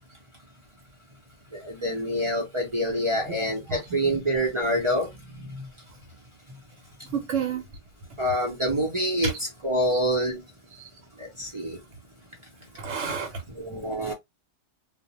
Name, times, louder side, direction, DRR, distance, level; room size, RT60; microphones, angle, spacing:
voice 1, 1.5-5.7 8.2-9.3 9.6-10.4 11.2-11.8 13.6-14.1, equal, 35° right, 0.5 m, -26 dB
voice 2, 3.7-4.2 7.1-7.6 9.2-9.4 10.8-10.9 12.8-13.4, right 6 dB, 70° right, 0.9 m, -30 dB
2.3 x 2.1 x 2.8 m
omnidirectional pair, 1.3 m